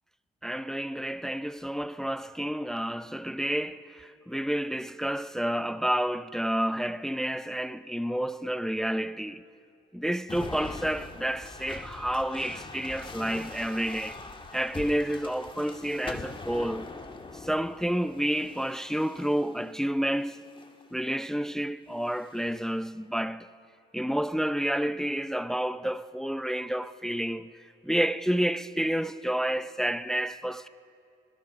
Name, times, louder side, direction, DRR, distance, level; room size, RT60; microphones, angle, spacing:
voice 1, 0.4-9.4 9.9-14.2 14.5-16.9 17.4-20.4 20.9-23.5 23.9-27.5 27.8-30.7, equal, ahead, 0.5 m, -30 dB
sound 1, 10.3-19.7 20.3-20.9 22.0-22.7, left 3 dB, 25° left, 1.8 m, -43 dB
26.0 x 20.0 x 5.3 m
cardioid pair, 90°, 20 cm